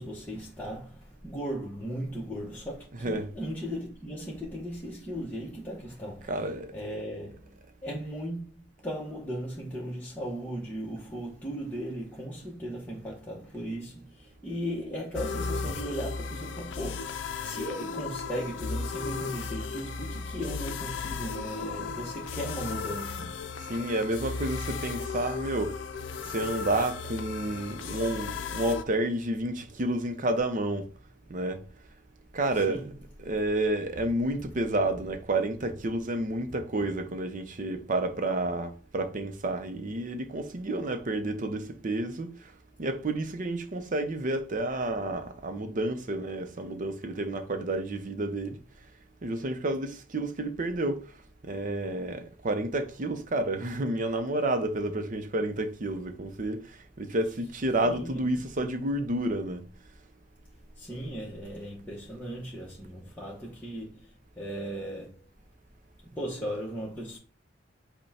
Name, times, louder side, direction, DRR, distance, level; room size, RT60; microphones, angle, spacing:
voice 1, 0.0-6.4 6.7-23.5 32.5-32.9 57.8-58.2 60.8-65.3 66.0-67.2, equal, 10° left, 0.9 m, -37 dB
voice 2, 6.3-6.7 23.7-25.8 26.3-30.9 31.3-31.6 32.3-32.9 33.2-42.3 42.8-48.6 49.2-51.0 51.4-56.6 57.0-59.6, right 1 dB, 45° right, 0.6 m, -30 dB
sound 1, 15.1-28.8, left 4 dB, 80° left, 0.5 m, -35 dB
5.4 x 2.2 x 4.1 m
head